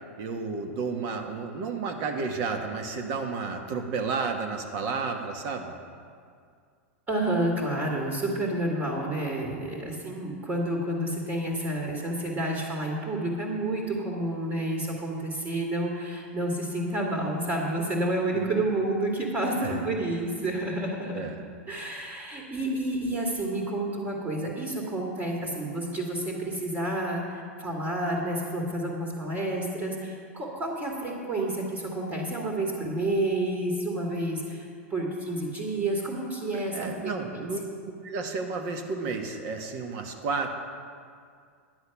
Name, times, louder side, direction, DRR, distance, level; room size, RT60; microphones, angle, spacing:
voice 1, 0.2-5.8 18.3-18.4 19.6-19.8 21.1-21.4 36.7-37.6 38.0-40.5, right 4 dB, 50° right, 4 dB, 1.4 m, -32 dB
voice 2, 7.1-21.2 21.7-37.4, right 1 dB, 25° right, -2 dB, 2.3 m, -30 dB
11.0 x 8.0 x 5.9 m, 2.1 s
hypercardioid pair, 110°, 7 cm